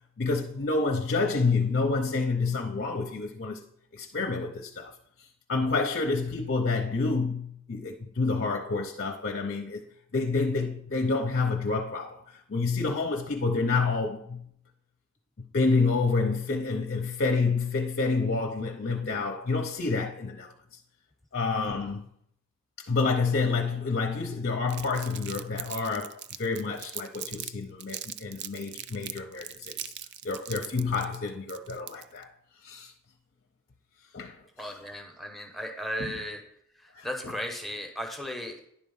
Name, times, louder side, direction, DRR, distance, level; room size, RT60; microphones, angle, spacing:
voice 1, 0.2-3.6 3.9-9.8 10.1-14.5 15.4-20.5 21.3-22.1 22.9-29.9 30.2-32.3 32.6-32.9 34.1-34.4 36.0-36.1 36.9-37.3, left 4 dB, 50° left, 0.7 m, -28 dB
Crumpling crinkling, 24.7-27.5 27.8-32.2, right 11 dB, 55° right, 0.4 m, -40 dB
voice 2, 34.6-36.4 36.8-38.7, equal, ahead, 0.9 m, -36 dB
10.0 x 4.2 x 5.5 m
head